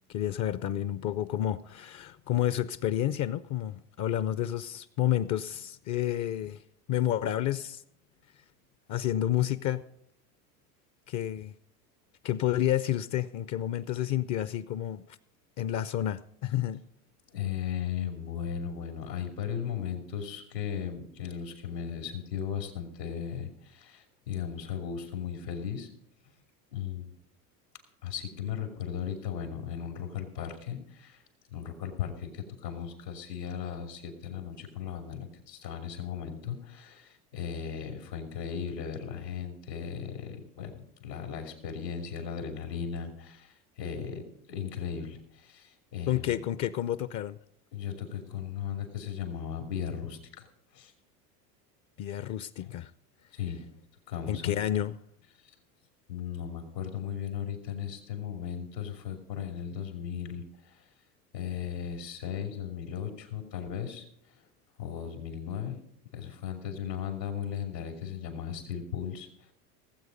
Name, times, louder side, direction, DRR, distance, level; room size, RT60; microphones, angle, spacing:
voice 1, 0.1-6.6 6.9-7.8 8.9-9.8 11.1-11.5 12.2-15.2 15.6-16.8 46.1-47.4 52.0-52.9 54.3-55.0, left 12 dB, 40° left, 0.5 m, -30 dB
voice 2, 17.3-25.9 26.7-27.1 28.0-31.2 31.5-44.2 44.5-46.4 47.7-50.5 50.7-50.9 52.6-52.7 53.3-53.6 54.1-54.6 56.1-60.7 61.3-64.0 64.8-65.8 66.1-69.3, left 8 dB, 85° left, 2.8 m, -36 dB
17.0 x 8.1 x 5.2 m
hypercardioid pair, 85°, 48 cm